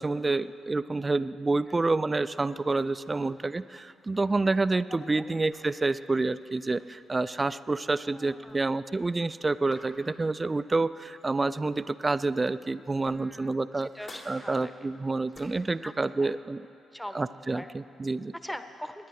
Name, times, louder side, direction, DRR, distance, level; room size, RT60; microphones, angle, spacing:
voice 1, 0.0-13.9 14.3-16.7 17.1-18.3, right 3 dB, 30° right, 14 dB, 0.4 m, -28 dB
sound 1, 2.7-12.1 12.5-15.8, left 2 dB, 65° left, 3.3 m, -55 dB
voice 2, 4.9-5.3 8.0-8.7 13.1-13.5 13.9-14.9 15.8-15.9 16.2-16.3 16.9-17.2 17.5-17.7 18.4-19.1, equal, 5° left, 9 dB, 1.0 m, -42 dB
21.5 x 9.9 x 4.8 m, 2.8 s
hypercardioid pair, 45°, 0 cm